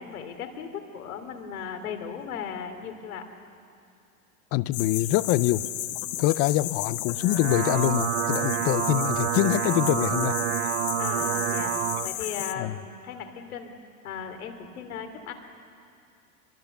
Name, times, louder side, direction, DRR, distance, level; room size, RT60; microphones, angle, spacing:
voice 1, 0.0-3.2 11.0-11.8 12.0-13.7 14.0-15.3, left 7 dB, 75° left, 5 dB, 3.1 m, -37 dB
voice 2, 4.5-5.7 6.2-10.4 12.6-12.8, left 16 dB, 35° left, 17 dB, 0.6 m, -24 dB
sound 1, 4.7-12.5, left 14 dB, 60° left, 1.2 m, -33 dB
sound 2, 7.1-12.1, right 14 dB, 55° right, 0.9 m, -28 dB
25.0 x 22.5 x 7.0 m, 2.5 s
hypercardioid pair, 120°, 43 cm